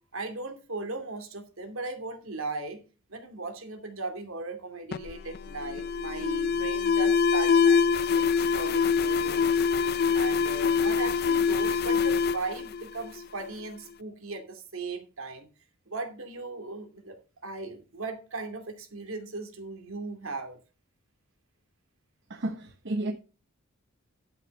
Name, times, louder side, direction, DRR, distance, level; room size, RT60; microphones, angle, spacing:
voice 1, 0.1-2.8 3.1-9.6 10.1-15.5 15.9-17.2 17.4-20.6, right 3 dB, 75° right, 2.5 m, -37 dB
Alarm, 4.9-13.5, left 6 dB, 50° left, 0.4 m, -25 dB
voice 2, 22.3-23.1, right 1 dB, 60° right, 1.1 m, -32 dB
11.5 x 5.8 x 5.3 m
head